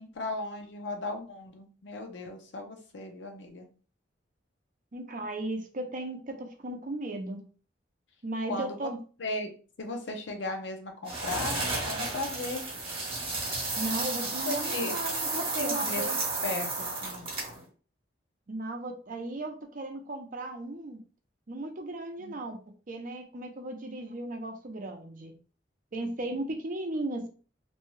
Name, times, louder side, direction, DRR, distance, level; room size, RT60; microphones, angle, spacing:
voice 1, 0.0-3.7 8.5-8.9 9.2-9.5 9.8-12.6 14.5-14.9 15.6-16.0 16.4-17.3 22.2-22.4, left 2 dB, 70° left, 4 dB, 0.6 m, -36 dB
voice 2, 4.9-7.4 8.2-9.0 13.8-16.2 18.5-21.0 21.5-22.6 22.9-25.3 25.9-27.3, right 2 dB, 45° right, 4 dB, 0.5 m, -36 dB
Pouring grain or seeds, 11.1-17.6, right 3 dB, 30° right, 1.1 m, -32 dB
2.6 x 2.2 x 3.1 m, 0.38 s
head